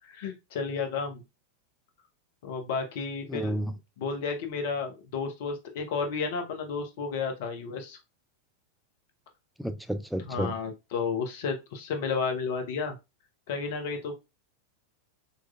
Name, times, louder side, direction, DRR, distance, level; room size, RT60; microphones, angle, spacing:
voice 1, 0.1-1.2 2.4-3.6 4.0-8.0 10.3-13.0 13.5-14.1, left 5 dB, 50° left, 0.8 m, -32 dB
voice 2, 3.3-3.8 9.6-10.5, right 1 dB, ahead, 0.3 m, -31 dB
4.1 x 3.0 x 2.3 m
figure-of-eight pair, 90°, 0 cm